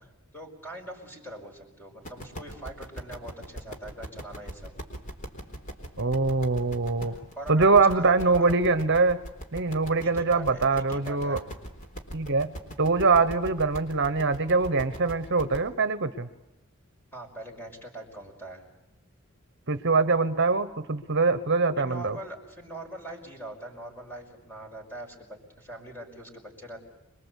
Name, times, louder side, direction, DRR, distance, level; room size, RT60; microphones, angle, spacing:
voice 1, 0.3-4.7 7.4-8.5 10.0-11.4 17.1-18.6 21.8-26.8, right 2 dB, 10° left, 2 dB, 5.6 m, -42 dB
sound 1, 2.0-15.6, equal, 35° left, 3.8 m, -40 dB
voice 2, 6.0-7.1 7.5-9.2 9.5-11.4 12.1-12.5 12.8-16.3 19.7-22.2, right 3 dB, 55° right, 11 dB, 1.0 m, -23 dB
26.0 x 23.0 x 8.3 m, 0.98 s
head